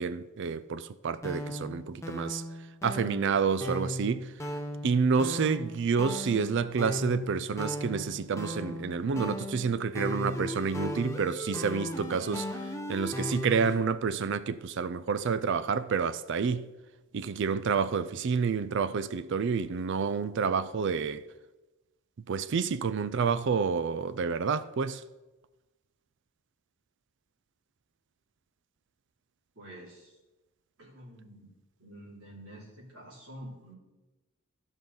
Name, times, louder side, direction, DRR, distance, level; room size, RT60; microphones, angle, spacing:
voice 1, 0.0-2.4 2.8-4.3 4.8-12.5 12.9-16.7 17.1-21.2 22.3-25.0, right 5 dB, 55° right, 0.4 m, -29 dB
sound 1, 1.2-13.8, left 1 dB, 15° left, 0.8 m, -37 dB
voice 2, 29.5-30.2 30.8-31.5 31.8-33.8, right 1 dB, 80° right, 3.0 m, -48 dB
14.5 x 5.3 x 3.9 m
head